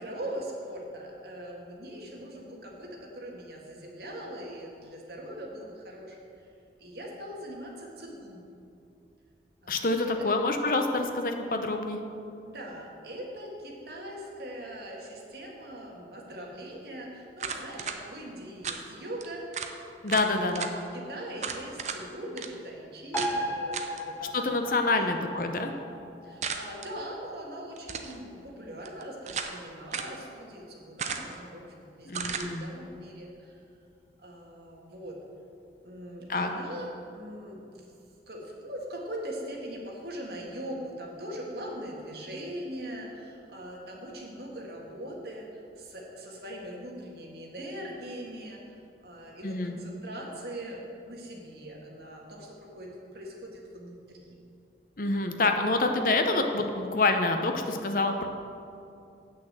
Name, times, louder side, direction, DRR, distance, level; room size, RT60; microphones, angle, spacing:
voice 1, 0.0-6.5 6.8-8.4 9.6-10.3 12.4-19.5 20.2-24.5 24.9-25.1 25.6-25.7 26.2-33.6 34.2-35.2 35.8-37.9 38.3-45.5 45.8-48.8 49.0-54.3, equal, 65° right, -2 dB, 1.8 m, -41 dB
voice 2, 9.7-12.0 20.0-20.7 24.3-25.7 32.1-32.6 36.3-36.5 49.4-49.7 55.0-58.3, left 2 dB, 50° left, 5 dB, 0.8 m, -27 dB
sound 1, 17.4-18.0 18.6-18.8 19.2-19.3 19.5-19.7 20.1-20.7 21.4-22.0 22.4-22.5 23.2-23.3 23.7-24.0 26.4-26.9 27.8-28.2 28.8-29.6 29.9-30.1 31.0-31.4 32.1-32.5, right 6 dB, 40° right, 0.6 m, -35 dB
sound 2, 23.1-30.1 30.4-30.5, equal, 10° left, 0.9 m, -38 dB
8.4 x 6.5 x 7.5 m, 2.6 s
head